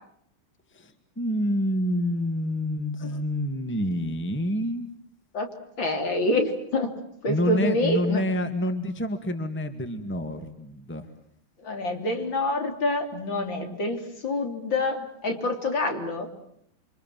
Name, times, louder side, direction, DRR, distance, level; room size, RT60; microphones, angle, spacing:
voice 1, 0.7-4.9 7.3-11.1, left 1 dB, 5° left, 8 dB, 1.8 m, -28 dB
voice 2, 5.8-6.9 7.2-8.2 11.6-16.3, left 2 dB, 55° left, 5 dB, 4.0 m, -27 dB
28.5 x 25.5 x 7.6 m, 0.70 s
omnidirectional pair, 2.4 m